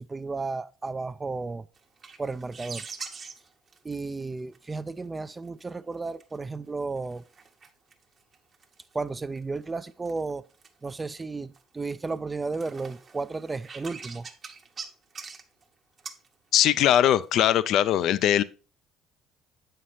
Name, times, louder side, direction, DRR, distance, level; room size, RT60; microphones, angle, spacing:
voice 1, 0.0-1.7 2.2-2.8 3.8-7.2 8.9-10.4 10.8-14.3, right 3 dB, 25° right, 0.3 m, -33 dB
sound 1, 1.8-4.8 5.0-6.4 6.8-9.0 9.3-11.2 11.5-12.2 12.4-15.6 16.0-16.3 16.8-17.5, right 5 dB, 40° right, 0.9 m, -44 dB
voice 2, 16.5-18.4, left 11 dB, 65° left, 0.4 m, -21 dB
7.5 x 5.7 x 3.1 m
supercardioid pair, 75°, 0 cm